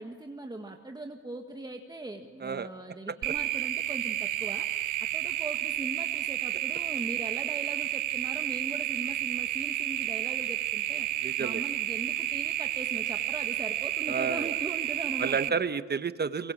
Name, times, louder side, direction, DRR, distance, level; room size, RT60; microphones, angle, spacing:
voice 1, 0.0-4.7 5.1-11.1 11.4-15.5, right 2 dB, 15° right, 3 dB, 1.7 m, -40 dB
voice 2, 2.4-3.2 11.2-11.6 14.1-14.5 15.2-16.5, right 5 dB, 35° right, 11 dB, 1.2 m, -31 dB
sound 1, 3.2-15.5, right 14 dB, 85° right, 1.0 m, -31 dB
24.0 x 24.0 x 7.4 m, 1.4 s
cardioid pair, 90°, 30 cm